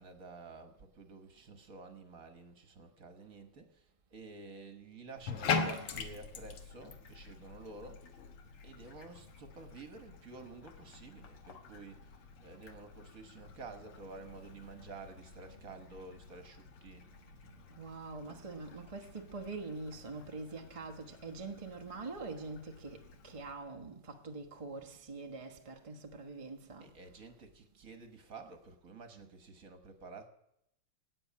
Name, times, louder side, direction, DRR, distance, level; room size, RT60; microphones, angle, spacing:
voice 1, 0.0-8.1 8.6-17.0 26.8-30.3, right 3 dB, 45° right, 1.6 m, -51 dB
Bathtub (filling or washing), 5.2-23.5, left 5 dB, 75° left, 2.2 m, -44 dB
voice 2, 17.1-26.9, right 3 dB, 25° right, 0.8 m, -45 dB
17.0 x 8.8 x 8.5 m
omnidirectional pair, 2.4 m